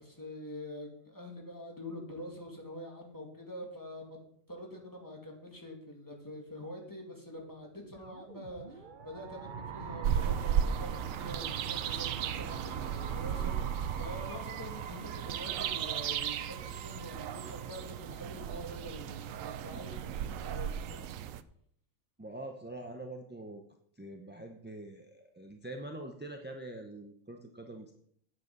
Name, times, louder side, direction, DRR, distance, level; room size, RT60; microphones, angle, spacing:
voice 1, 0.0-4.2 4.5-21.1, left 1 dB, 15° left, 0 dB, 2.2 m, -45 dB
sound 1, 7.7-18.6, right 6 dB, 45° right, 0.8 m, -45 dB
sound 2, 10.0-21.4, right 9 dB, 75° right, 1.0 m, -35 dB
voice 2, 22.2-23.6 24.0-27.9, right 1 dB, 10° right, 3 dB, 0.5 m, -44 dB
9.4 x 7.7 x 5.4 m, 0.67 s
omnidirectional pair, 1.4 m